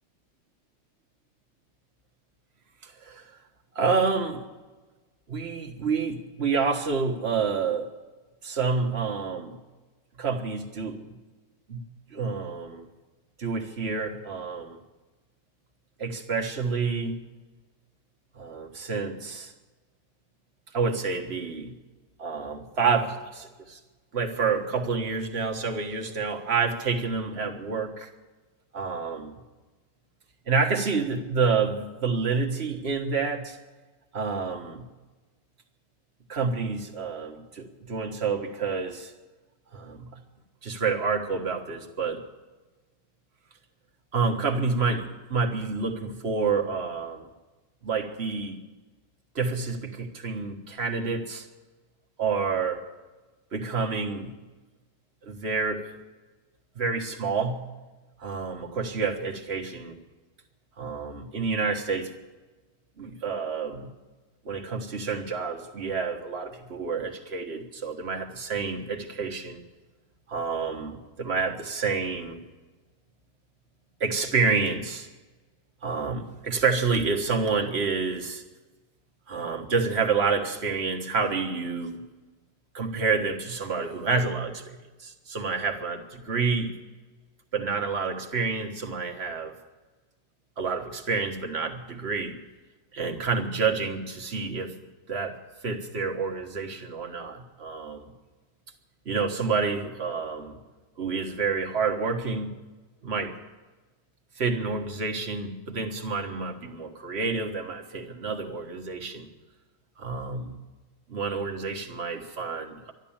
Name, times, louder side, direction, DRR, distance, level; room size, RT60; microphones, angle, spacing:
voice 1, 2.8-3.3 3.7-4.4 5.3-7.9 8.4-9.6 10.2-11.0 11.7-11.8 12.1-12.9 13.4-14.8 16.0-17.2 18.4-19.5 20.7-21.7 22.2-23.8 24.1-28.1 28.7-29.3 30.5-33.6 34.1-34.8 36.3-39.1 39.7-40.2 40.6-42.2 44.1-47.2 47.8-48.6 49.3-51.5 52.2-52.8 53.5-54.3 55.2-55.9 56.7-57.6 58.2-60.0 60.8-62.1 63.0-63.9 64.4-69.6 70.3-72.4 74.0-75.1 75.8-78.4 79.3-82.0 82.7-86.7 87.5-89.5 90.6-92.4 92.9-94.7 95.1-95.4 95.6-98.1 99.0-100.6 101.0-102.5 103.0-103.3 104.4-109.3 110.0-110.6 111.1-112.9, right 4 dB, 35° right, 3 dB, 1.5 m, -28 dB
13.0 x 12.0 x 8.8 m, 1.2 s
omnidirectional pair, 2.1 m